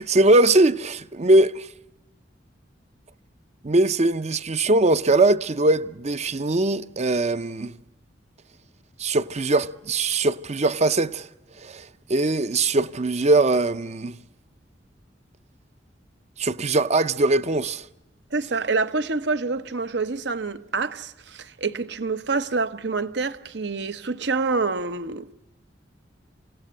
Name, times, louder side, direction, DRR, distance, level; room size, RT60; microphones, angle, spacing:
voice 1, 0.0-1.7 3.6-7.7 9.0-11.3 11.6-14.2 16.4-17.8, right 2 dB, 40° right, 0.7 m, -21 dB
voice 2, 18.3-25.3, right 4 dB, 70° right, 1.0 m, -27 dB
26.5 x 17.0 x 7.9 m
head